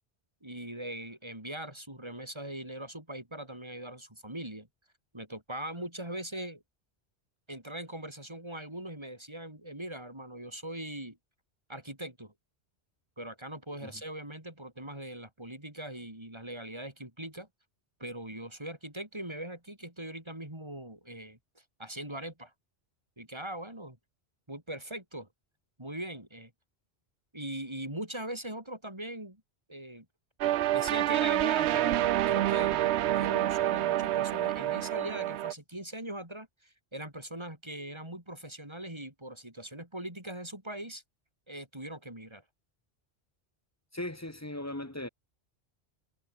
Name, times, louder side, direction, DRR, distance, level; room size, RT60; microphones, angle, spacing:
voice 1, 0.4-4.7 5.1-6.6 7.5-11.2 11.7-12.3 13.2-17.5 18.0-22.5 23.2-24.0 24.5-25.3 25.8-26.5 27.3-29.4 29.7-30.1 30.7-41.0 41.5-42.4, right 1 dB, 25° right, 4.3 m, -41 dB
sound 1, 30.4-35.5, right 13 dB, 80° right, 0.8 m, -27 dB
voice 2, 43.9-45.1, left 1 dB, 15° left, 1.4 m, -38 dB
omnidirectional pair, 1.1 m